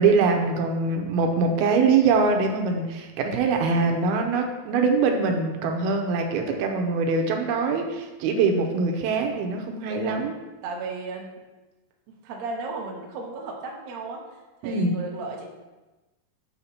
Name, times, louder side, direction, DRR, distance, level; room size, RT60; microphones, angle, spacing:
voice 1, 0.0-10.4 14.6-14.9, right 4 dB, 85° right, 3 dB, 2.6 m, -23 dB
voice 2, 9.9-10.3 10.6-11.3 12.2-14.2 14.6-15.4, right 3 dB, 65° right, 0 dB, 1.8 m, -34 dB
7.2 x 4.3 x 5.6 m, 1.1 s
omnidirectional pair, 4.4 m